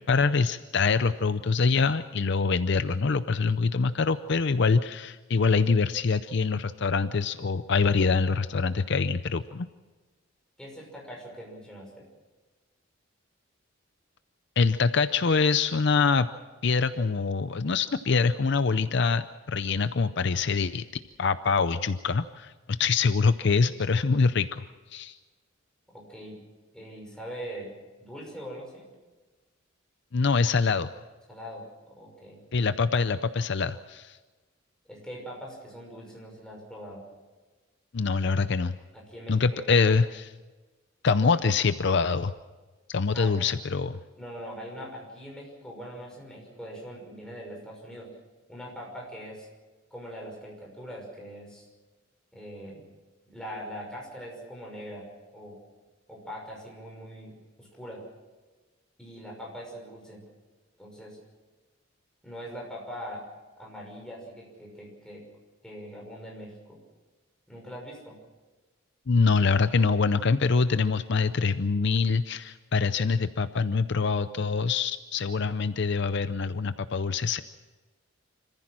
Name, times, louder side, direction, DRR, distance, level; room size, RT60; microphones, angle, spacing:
voice 1, 0.1-9.7 14.6-16.3 16.6-20.8 21.2-22.5 22.8-24.7 24.9-25.2 30.1-30.9 32.5-34.2 37.9-38.7 39.3-40.3 41.0-42.3 42.9-44.0 69.1-77.4, left 4 dB, 60° left, 12 dB, 0.6 m, -24 dB
voice 2, 10.6-12.1 25.9-26.4 26.7-27.7 28.0-28.9 31.3-32.4 34.9-37.0 38.9-39.8 43.1-43.5 44.2-48.1 48.5-49.5 49.9-51.7 52.3-52.8 53.3-55.1 55.3-55.6 56.1-58.0 59.0-60.2 60.8-61.2 62.2-63.2 63.6-65.2 65.6-66.8 67.5-68.2, equal, 5° left, -2 dB, 5.9 m, -42 dB
26.5 x 15.0 x 7.5 m, 1.3 s
head